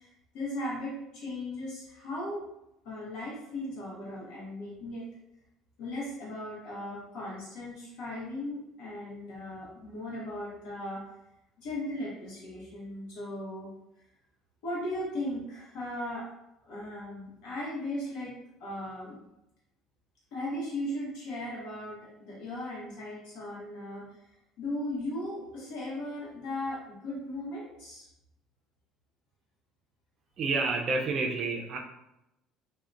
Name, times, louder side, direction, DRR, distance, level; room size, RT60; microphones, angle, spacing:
voice 1, 0.0-2.4 2.8-5.1 5.8-11.0 11.6-13.7 14.6-16.3 16.6-18.3 18.6-19.2 20.3-24.3 24.6-28.1, left 1 dB, 75° left, -5 dB, 0.8 m, -37 dB
voice 2, 30.4-31.8, right 3 dB, 40° right, 1 dB, 0.3 m, -29 dB
3.6 x 2.1 x 2.4 m, 0.87 s
cardioid pair, 155°, 0 cm